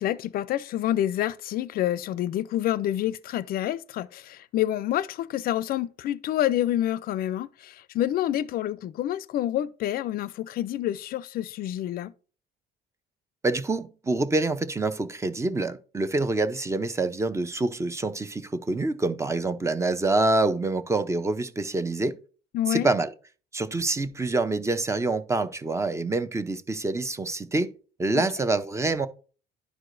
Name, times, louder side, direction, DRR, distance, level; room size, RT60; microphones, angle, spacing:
voice 1, 0.0-12.1 22.5-22.9 28.1-28.3, left 12 dB, 60° left, 0.4 m, -28 dB
voice 2, 13.4-22.2 22.7-23.1 23.5-27.7 28.0-29.1, right 2 dB, 15° right, 0.6 m, -26 dB
11.0 x 4.7 x 2.6 m
cardioid pair, 110°, 17 cm